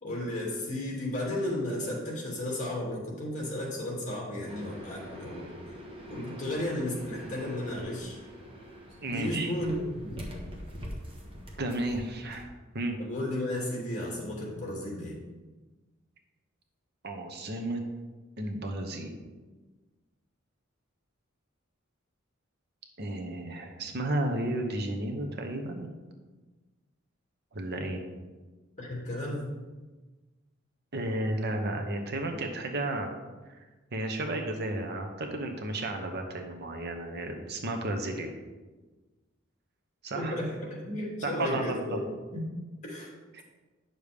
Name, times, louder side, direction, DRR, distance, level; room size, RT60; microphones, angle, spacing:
voice 1, 0.0-5.5 6.1-8.2 9.1-10.3 13.0-15.1 28.8-29.5 40.1-42.0 42.3-42.4 42.8-43.1, left 1 dB, 35° left, -3 dB, 2.6 m, -34 dB
sound 1, 4.5-12.4, equal, 25° right, 1.4 m, -44 dB
voice 2, 9.0-9.5 11.6-12.5 12.7-13.0 17.0-17.8 18.4-19.2 23.0-25.9 27.5-28.0 30.9-33.1 33.6-33.7 33.9-38.3 40.0-40.4 41.2-42.0 43.3-43.4, right 1 dB, 55° right, 4 dB, 1.0 m, -33 dB
9.4 x 6.6 x 3.5 m, 1.3 s
head